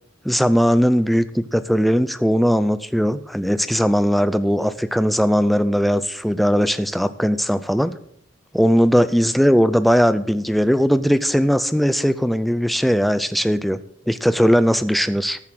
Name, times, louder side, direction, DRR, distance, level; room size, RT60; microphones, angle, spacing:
voice 1, 0.2-8.0 8.5-13.8 14.1-15.4, equal, ahead, 13 dB, 0.4 m, -19 dB
14.0 x 7.2 x 6.2 m, 0.69 s
head